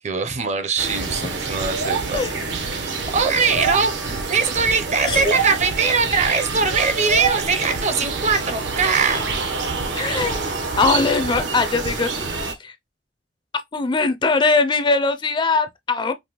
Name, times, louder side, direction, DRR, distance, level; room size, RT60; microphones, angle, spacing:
voice 1, 0.0-2.9 3.1-9.3, right 5 dB, 40° right, 0.6 m, -22 dB
sound 1, 0.8-12.5, right 4 dB, 75° right, 0.9 m, -26 dB
voice 2, 5.0-5.3 9.9-12.3 12.6-12.8 13.7-16.1, left 3 dB, 25° left, 0.4 m, -21 dB
5.2 x 2.1 x 2.9 m
head